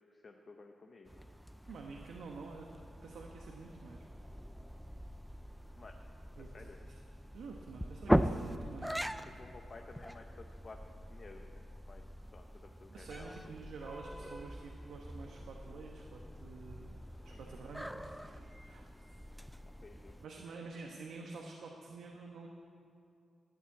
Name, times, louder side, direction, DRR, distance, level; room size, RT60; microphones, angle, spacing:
voice 1, 0.1-1.3 5.8-5.9 6.5-6.8 9.0-10.8 11.1-12.0 12.3-13.3 14.2-14.3 17.3-17.6 19.8-20.2, left 3 dB, 35° left, 3 dB, 0.8 m, -54 dB
sound 1, 1.1-20.3, equal, ahead, 0.4 m, -41 dB
voice 2, 1.7-2.7 3.0-4.4 6.4-7.0 7.3-9.1 12.9-18.9 20.2-22.5, right 4 dB, 80° right, 1 dB, 1.2 m, -49 dB
13.5 x 9.0 x 8.5 m, 2.5 s
wide cardioid pair, 155°, 0 cm